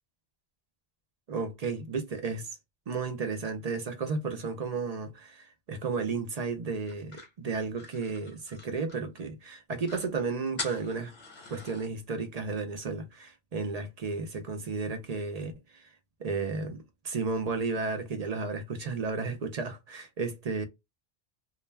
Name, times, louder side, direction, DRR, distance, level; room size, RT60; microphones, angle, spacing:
voice 1, 1.3-2.5 2.9-11.1 11.5-15.9 16.2-20.6, right 4 dB, 50° right, 0.5 m, -33 dB
sound 1, 6.9-9.2 9.5-9.6 9.8-10.1 10.6-11.9, left 3 dB, 45° left, 0.9 m, -43 dB
2.3 x 2.1 x 3.1 m
omnidirectional pair, 1.1 m